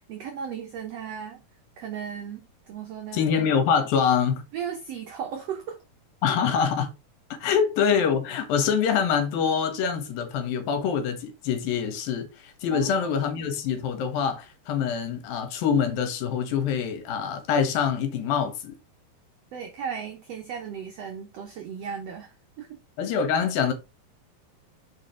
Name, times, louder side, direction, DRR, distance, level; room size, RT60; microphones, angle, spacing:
voice 1, 0.1-1.4 1.8-3.3 4.5-5.8 12.7-13.5 19.5-22.8, right 7 dB, 90° right, 1.4 m, -36 dB
voice 2, 3.1-4.4 6.2-6.9 7.4-18.7 23.0-23.7, left 7 dB, 75° left, 3.1 m, -25 dB
6.5 x 5.0 x 3.6 m
omnidirectional pair, 4.1 m